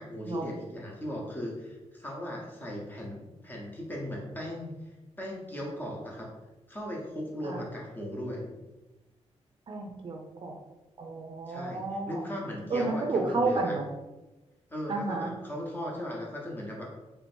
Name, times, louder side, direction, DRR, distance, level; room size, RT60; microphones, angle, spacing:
voice 1, 0.0-4.7 5.2-6.3 6.7-8.4 11.5-13.7 14.7-16.9, equal, 15° left, -2 dB, 0.9 m, -37 dB
voice 2, 9.7-10.6 11.0-12.2 12.7-13.9 14.9-15.3, right 3 dB, 45° right, 1 dB, 0.5 m, -31 dB
3.2 x 2.9 x 4.3 m, 1.1 s
wide cardioid pair, 155°, 12 cm